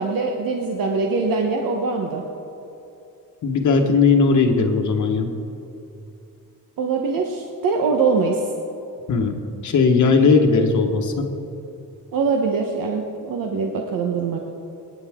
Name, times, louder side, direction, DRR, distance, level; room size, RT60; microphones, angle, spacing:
voice 1, 0.0-2.2 6.8-8.4 12.1-14.4, right 4 dB, 70° right, 1 dB, 1.2 m, -23 dB
voice 2, 3.4-5.3 9.1-11.3, left 4 dB, 55° left, 3 dB, 1.4 m, -18 dB
27.0 x 9.8 x 3.7 m, 2.8 s
wide cardioid pair, 175°, 35 cm